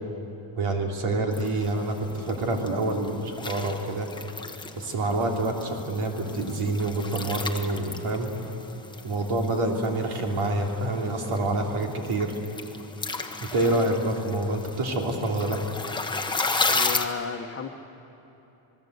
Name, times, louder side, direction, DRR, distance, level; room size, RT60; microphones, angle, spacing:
voice 1, 0.6-4.1 4.7-8.3 9.0-12.3 13.4-15.6, right 2 dB, 85° right, 1 dB, 3.2 m, -27 dB
sound 1, 1.3-17.1, left 3 dB, 10° left, 1.0 m, -34 dB
voice 2, 16.7-17.7, left 6 dB, 25° left, 2 dB, 1.3 m, -32 dB
27.0 x 20.0 x 8.1 m, 3.0 s
cardioid pair, 160°, 49 cm